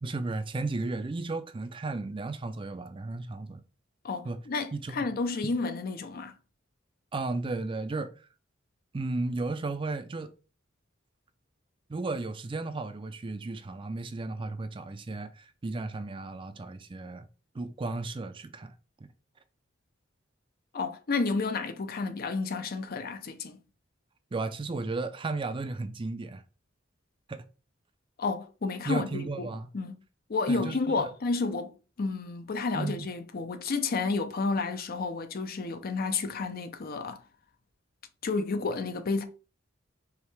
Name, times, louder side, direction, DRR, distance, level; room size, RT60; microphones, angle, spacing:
voice 1, 0.0-3.6 4.2-4.4 4.7-5.1 5.4-5.5 7.1-8.3 8.9-10.3 11.9-17.3 17.5-18.7 24.3-26.4 27.3-27.4 28.8-29.7 30.5-31.1 32.7-33.1, right 3 dB, 25° right, 0.4 m, -34 dB
voice 2, 4.0-6.3 20.7-23.6 28.2-30.0 30.3-37.2 38.2-39.2, left 4 dB, 50° left, 0.5 m, -31 dB
4.8 x 3.1 x 3.3 m
head